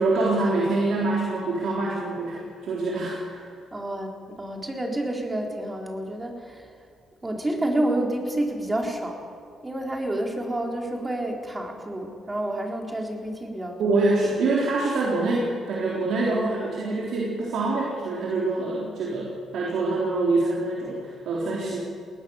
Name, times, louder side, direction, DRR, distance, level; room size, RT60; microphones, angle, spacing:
voice 1, 0.0-3.5 13.8-21.8, right 2 dB, 70° right, -4 dB, 4.0 m, -25 dB
voice 2, 3.7-6.7 7.2-9.2 9.6-14.0 16.3-17.0 21.4-21.7, right 1 dB, 20° right, 1 dB, 4.0 m, -29 dB
21.5 x 18.5 x 7.2 m, 2.3 s
cardioid pair, 90°, 0 cm